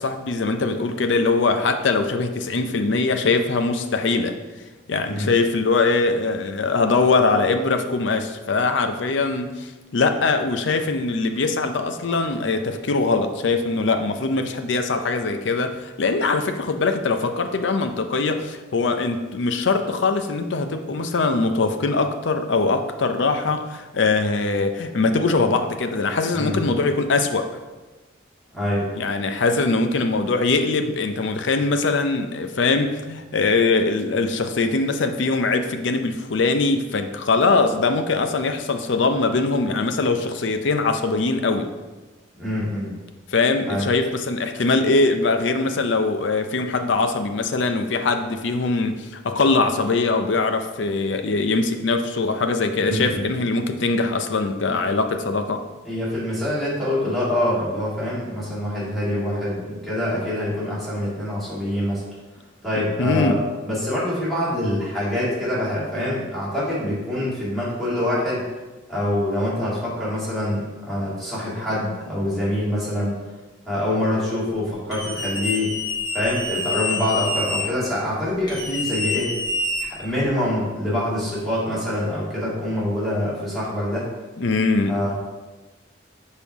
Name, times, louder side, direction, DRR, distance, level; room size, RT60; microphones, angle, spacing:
voice 1, 0.0-4.4 4.9-27.5 28.9-41.7 43.3-55.6 63.0-63.4 84.4-85.0, left 3 dB, 70° left, 7 dB, 0.5 m, -22 dB
voice 2, 26.3-26.8 28.5-28.9 42.4-42.9 43.7-43.9 52.8-53.3 55.8-62.0 62.6-68.4 68.9-73.1 73.7-75.7 76.1-79.3 79.8-84.1 84.9-85.1, left 1 dB, ahead, -10 dB, 2.2 m, -25 dB
sound 1, 74.9-77.6 78.5-80.3, left 2 dB, 20° left, 1.3 m, -27 dB
5.4 x 4.4 x 4.7 m, 1.2 s
head